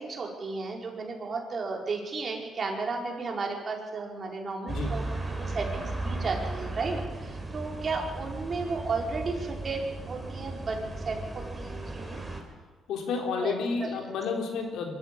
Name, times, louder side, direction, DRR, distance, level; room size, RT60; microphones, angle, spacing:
voice 1, 0.0-12.2 13.4-13.5 13.8-14.1, right 4 dB, 40° right, 0 dB, 5.0 m, -34 dB
sound 1, 4.7-12.4, right 2 dB, 10° right, 4.5 m, -36 dB
voice 2, 12.9-15.0, left 5 dB, 80° left, 2 dB, 3.9 m, -31 dB
23.0 x 13.5 x 8.7 m, 1.4 s
cardioid pair, 90°, 0 cm